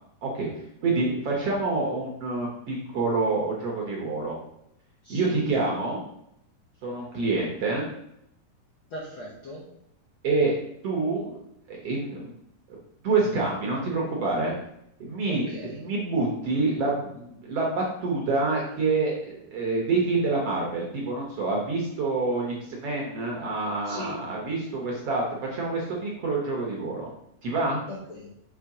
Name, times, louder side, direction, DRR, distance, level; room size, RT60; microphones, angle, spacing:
voice 1, 0.8-4.4 5.1-6.0 6.8-7.8 10.2-10.6 10.8-11.4 11.7-12.3 12.7-12.8 13.0-14.5 15.0-15.5 15.7-25.2 25.5-27.1 27.4-27.8, right 3 dB, 60° right, -2 dB, 1.7 m, -27 dB
voice 2, 5.0-5.3 8.9-9.6 15.3-15.9 23.8-24.2 27.9-28.3, left 1 dB, 65° left, -3 dB, 1.2 m, -39 dB
7.2 x 3.4 x 4.8 m, 0.76 s
omnidirectional pair, 4.0 m